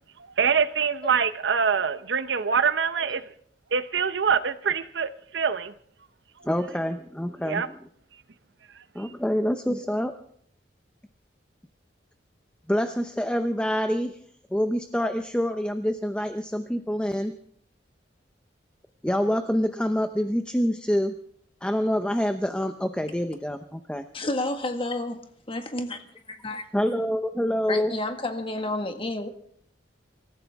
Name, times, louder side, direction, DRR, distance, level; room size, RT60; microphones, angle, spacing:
voice 1, 0.4-3.2 3.7-5.7 7.4-7.7, right 6 dB, 70° right, 0.7 m, -24 dB
voice 2, 6.4-7.7 8.9-10.1 12.7-14.1 14.5-17.3 19.0-21.2 21.6-24.1 26.7-27.9, equal, 5° left, 0.7 m, -26 dB
voice 3, 24.1-25.2 25.5-26.0 26.3-26.6 27.7-29.3, left 2 dB, 30° left, 1.6 m, -30 dB
25.0 x 14.5 x 3.6 m
head